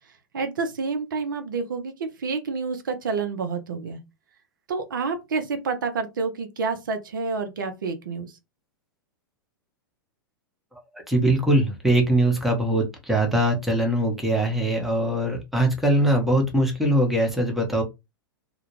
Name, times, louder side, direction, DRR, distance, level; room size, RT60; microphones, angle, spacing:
voice 1, 0.3-4.0 4.7-8.3, right 4 dB, 65° right, 0.5 m, -28 dB
voice 2, 11.1-17.8, right 1 dB, ahead, 0.7 m, -22 dB
2.3 x 2.1 x 3.0 m
figure-of-eight pair, 100°, 12 cm